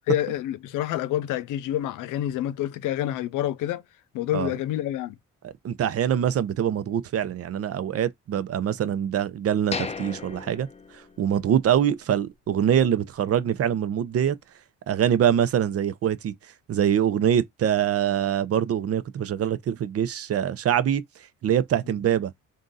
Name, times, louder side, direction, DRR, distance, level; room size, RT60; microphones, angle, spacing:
voice 1, 0.1-3.8 4.1-5.2, left 12 dB, 85° left, 0.5 m, -27 dB
voice 2, 5.4-10.7 11.2-14.4 14.9-16.3 16.7-21.0 21.4-22.3, right 9 dB, 50° right, 0.6 m, -24 dB
sound 1, 9.7-11.6 12.0-12.1 12.6-12.8, left 5 dB, 20° left, 0.5 m, -36 dB
3.7 x 2.6 x 3.8 m
cardioid pair, 90°, 30 cm